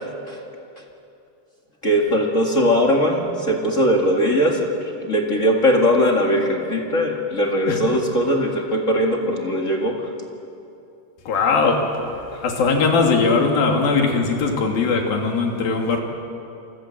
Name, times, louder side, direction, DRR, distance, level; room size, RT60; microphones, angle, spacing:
voice 1, 1.8-4.7 5.0-10.1 12.3-12.4, equal, 25° left, 1 dB, 1.8 m, -20 dB
voice 2, 11.3-11.8 12.4-16.0, left 4 dB, 80° left, 2 dB, 4.5 m, -19 dB
28.5 x 25.0 x 7.7 m, 2.7 s
omnidirectional pair, 4.1 m